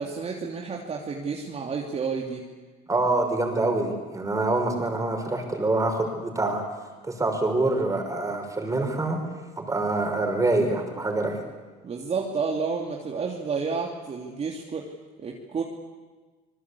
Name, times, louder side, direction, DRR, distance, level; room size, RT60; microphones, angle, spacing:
voice 1, 0.0-2.5 11.8-14.9 15.2-15.6, right 5 dB, 40° right, 0 dB, 2.9 m, -30 dB
voice 2, 2.9-6.6 7.0-9.2 9.6-11.4, right 2 dB, 20° right, 4 dB, 5.8 m, -25 dB
26.5 x 20.5 x 8.5 m, 1.3 s
cardioid pair, 110°, 17 cm